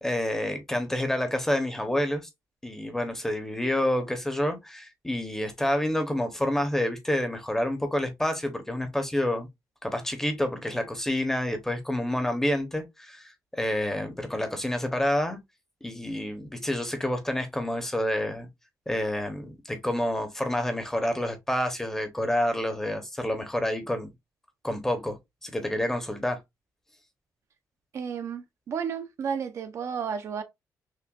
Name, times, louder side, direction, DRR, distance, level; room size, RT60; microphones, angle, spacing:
voice 1, 0.0-2.3 2.6-9.5 9.8-13.2 13.5-15.4 15.8-18.5 18.9-24.1 24.6-26.4, left 1 dB, 5° left, 0.7 m, -28 dB
voice 2, 27.9-30.4, right 7 dB, 45° right, 0.4 m, -32 dB
5.8 x 2.2 x 2.3 m
cardioid pair, 175°, 7 cm